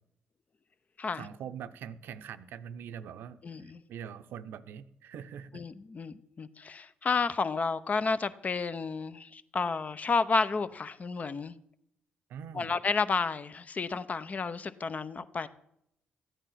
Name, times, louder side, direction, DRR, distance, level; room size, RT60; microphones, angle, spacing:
voice 1, 1.1-5.6 12.3-12.8, right 8 dB, 75° right, 0.6 m, -43 dB
voice 2, 3.4-3.8 5.5-11.5 12.5-15.5, left 4 dB, 45° left, 0.7 m, -31 dB
13.5 x 9.1 x 5.7 m
supercardioid pair, 55°, 4 cm